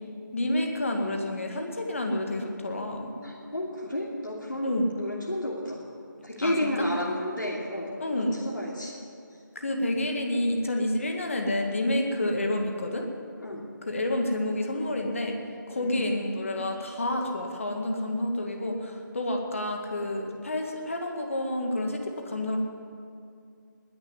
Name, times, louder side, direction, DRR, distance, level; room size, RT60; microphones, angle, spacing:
voice 1, 0.3-3.1 4.6-4.9 6.4-6.7 8.0-8.4 9.6-13.1 13.8-15.4 15.7-22.6, left 1 dB, 40° left, 2 dB, 2.0 m, -29 dB
voice 2, 3.2-5.8 6.2-7.9 8.4-8.9 13.4-13.6 15.7-16.7, left 1 dB, 70° left, -4 dB, 2.8 m, -32 dB
20.5 x 7.0 x 9.7 m, 2.4 s
figure-of-eight pair, 165°, 11 cm